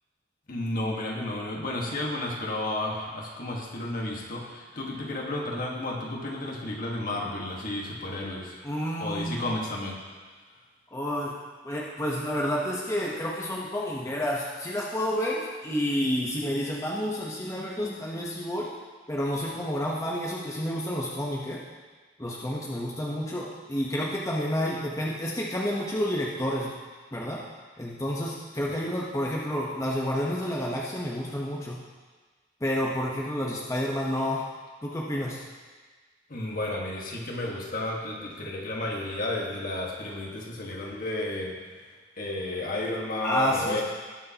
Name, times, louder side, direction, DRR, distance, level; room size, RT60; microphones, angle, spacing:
voice 1, 0.5-8.6 9.0-10.0 36.3-41.8 42.2-43.8, left 1 dB, 50° left, -1 dB, 1.6 m, -32 dB
voice 2, 8.6-9.4 10.9-11.3 11.6-18.7 19.1-21.6 22.2-26.7 27.1-27.4 27.8-31.8 32.6-34.5 34.8-35.4 43.2-43.8, equal, 15° left, -4 dB, 1.0 m, -30 dB
19.0 x 6.6 x 2.9 m, 1.4 s
head